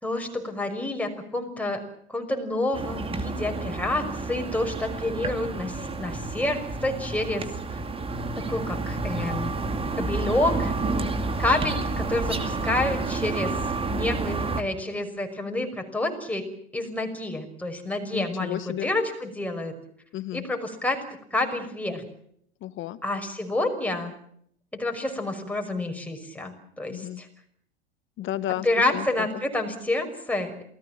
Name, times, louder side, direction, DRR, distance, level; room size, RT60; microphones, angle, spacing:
voice 1, 0.0-1.8 2.1-7.5 8.4-9.5 10.0-10.7 11.4-13.5 13.9-16.5 16.7-19.7 20.3-21.0 21.3-22.0 23.0-24.1 24.8-27.3 28.6-30.6, left 2 dB, 5° left, 3 dB, 5.7 m, -28 dB
sound 1, 2.7-14.6, right 3 dB, 15° right, 2.4 m, -30 dB
voice 2, 11.0-11.3 18.1-18.9 20.1-20.4 22.6-23.0 26.9-27.2 28.2-28.7 28.9-29.1, left 13 dB, 35° left, 13 dB, 1.8 m, -32 dB
28.5 x 18.5 x 7.5 m, 0.69 s
hypercardioid pair, 90°, 32 cm